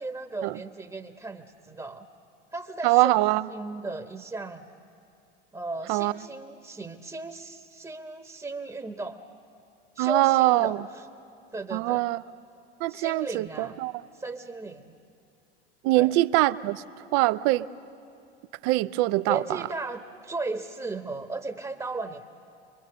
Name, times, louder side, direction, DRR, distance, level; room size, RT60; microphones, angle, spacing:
voice 1, 0.0-2.1 2.5-3.1 3.5-4.6 5.5-9.2 9.9-11.0 11.5-12.1 12.9-13.8 14.1-14.9 15.9-16.1 19.3-22.2, right 3 dB, 10° right, 5 dB, 1.1 m, -36 dB
voice 2, 2.8-3.5 5.9-6.1 10.0-10.8 11.7-12.2 12.8-13.9 15.8-16.8 17.1-17.7 18.6-19.6, right 18 dB, 55° right, 16 dB, 0.7 m, -23 dB
23.5 x 23.5 x 6.8 m, 2.5 s
hypercardioid pair, 75°, 29 cm